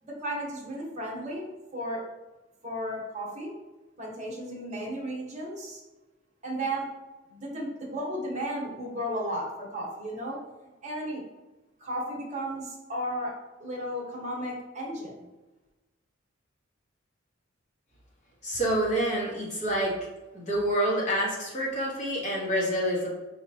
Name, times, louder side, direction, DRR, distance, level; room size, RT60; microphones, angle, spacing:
voice 1, 0.0-1.4 1.7-2.0 2.6-3.5 4.0-5.8 6.4-6.9 7.3-10.4 10.8-11.2 11.8-13.3 13.6-15.2, equal, 35° right, -3 dB, 1.1 m, -34 dB
voice 2, 18.4-19.9 20.3-23.1, right 1 dB, 35° left, -5 dB, 1.3 m, -27 dB
4.9 x 2.9 x 2.8 m, 1.1 s
head